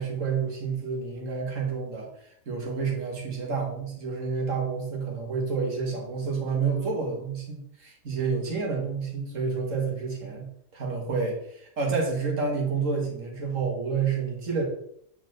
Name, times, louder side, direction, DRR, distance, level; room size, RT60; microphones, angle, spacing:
voice 1, 0.0-14.6, right 5 dB, 65° right, 0 dB, 1.8 m, -29 dB
8.0 x 4.3 x 3.2 m, 0.68 s
omnidirectional pair, 1.4 m